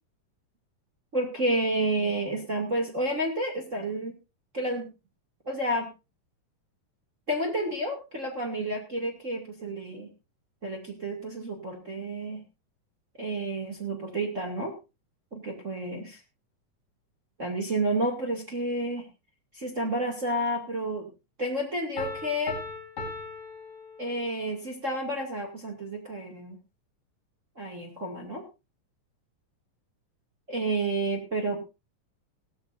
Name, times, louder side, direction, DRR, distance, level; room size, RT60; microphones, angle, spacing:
voice 1, 1.1-4.1 4.5-4.9 5.5-5.9 7.3-10.1 10.6-12.4 13.2-14.7 15.3-16.2 17.4-19.1 19.5-21.1 21.4-22.6 24.0-26.6 27.6-28.4 30.5-31.6, right 1 dB, 25° right, 1 dB, 2.3 m, -30 dB
Piano, 22.0-24.5, left 3 dB, 45° left, 3.8 m, -39 dB
17.5 x 14.5 x 2.6 m, 0.27 s
omnidirectional pair, 3.7 m